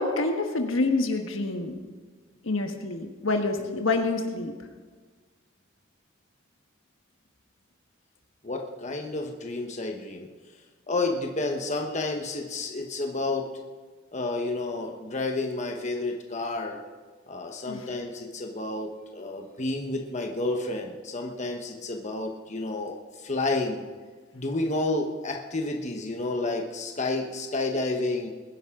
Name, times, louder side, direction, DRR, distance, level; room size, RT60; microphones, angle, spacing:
voice 1, 0.0-1.7 2.4-4.5 17.7-17.9, left 3 dB, 75° left, 4 dB, 1.4 m, -27 dB
voice 2, 8.4-10.3 10.9-13.5 14.1-16.8 17.3-23.8 24.3-28.3, left 2 dB, 35° left, 2 dB, 1.2 m, -30 dB
21.5 x 10.5 x 3.8 m, 1.4 s
head